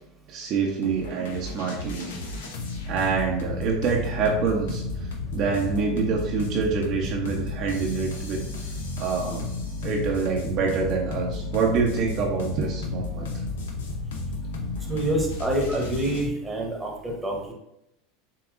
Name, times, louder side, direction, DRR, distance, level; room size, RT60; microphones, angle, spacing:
voice 1, 0.3-2.1 2.9-9.5 9.8-13.3, right 5 dB, 50° right, -1 dB, 0.8 m, -26 dB
sound 1, 0.8-16.3, left 3 dB, 75° left, 0.8 m, -32 dB
voice 2, 14.9-17.5, right 1 dB, 10° right, 0 dB, 1.3 m, -27 dB
6.9 x 2.9 x 2.6 m, 0.82 s
hypercardioid pair, 90°, 0 cm